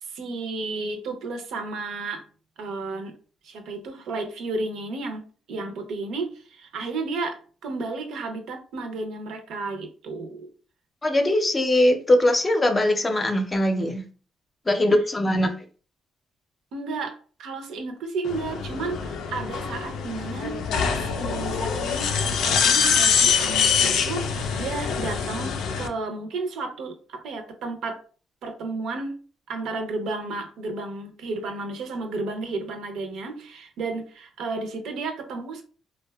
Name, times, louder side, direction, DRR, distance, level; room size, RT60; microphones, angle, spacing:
voice 1, 0.0-2.2 2.6-3.1 3.4-5.2 5.5-10.5 16.7-20.6 21.0-28.0 28.4-29.2 29.5-35.6, right 3 dB, 80° right, 5 dB, 0.5 m, -32 dB
voice 2, 11.0-14.0 14.7-15.5, left 1 dB, 25° left, 6 dB, 0.5 m, -21 dB
sound 1, 18.2-25.9, left 6 dB, 80° left, 0.4 m, -24 dB
2.6 x 2.2 x 2.2 m, 0.39 s
cardioid pair, 90°, 0 cm